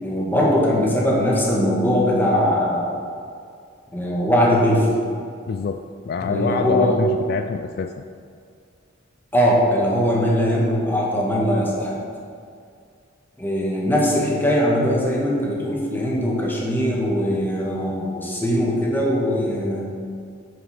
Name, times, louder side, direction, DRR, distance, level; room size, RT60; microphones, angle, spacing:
voice 1, 0.0-3.0 3.9-4.9 6.2-6.9 9.3-12.0 13.4-19.9, equal, 10° left, -3 dB, 1.7 m, -20 dB
voice 2, 5.5-8.0, left 5 dB, 50° left, 7 dB, 0.3 m, -25 dB
9.2 x 5.8 x 5.9 m, 2.3 s
head